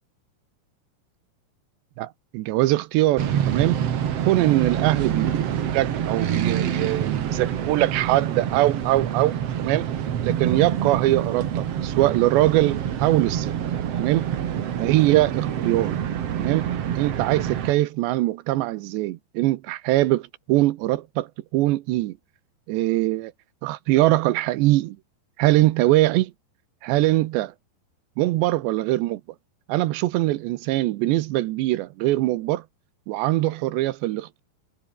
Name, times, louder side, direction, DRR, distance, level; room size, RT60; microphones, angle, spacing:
voice 1, 2.0-3.9 4.3-9.9 10.2-13.5 14.0-14.4 14.8-16.0 16.3-22.2 22.7-23.3 23.6-25.0 25.4-26.3 26.8-27.5 28.2-29.2 29.7-32.6 33.1-34.4, right 17 dB, 80° right, 3.0 m, -22 dB
sound 1, 3.2-17.7, right 9 dB, 65° right, 1.5 m, -26 dB
omnidirectional pair, 5.2 m